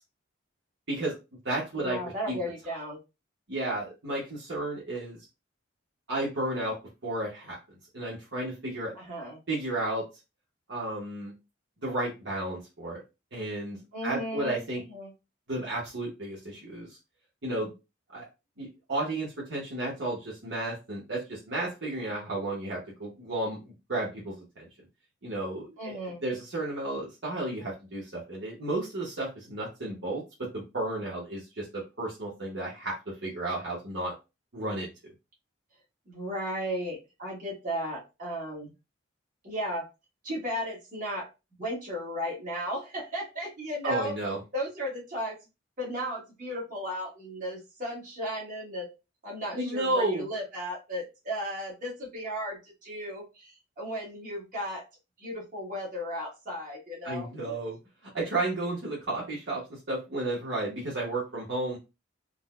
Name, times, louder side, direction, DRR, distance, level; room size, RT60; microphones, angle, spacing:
voice 1, 0.9-1.2 1.4-2.0 2.3-2.4 3.5-5.2 6.1-6.8 7.0-7.6 7.9-8.9 9.5-10.1 10.7-11.3 11.8-13.0 13.3-14.8 15.5-17.0 17.4-17.7 18.1-18.2 18.6-24.7 25.2-34.1 34.5-34.9 43.8-44.4 49.5-50.3 57.0-57.8 58.1-61.8, right 2 dB, 65° right, -5 dB, 1.0 m, -32 dB
voice 2, 1.7-3.0 8.9-9.4 13.9-14.6 14.9-15.1 25.8-26.2 36.0-38.7 39.4-39.9 40.2-41.3 41.6-45.4 45.8-48.9 49.2-54.8 55.2-57.3, equal, 45° right, -5 dB, 1.5 m, -35 dB
3.8 x 2.1 x 2.4 m, 0.27 s
head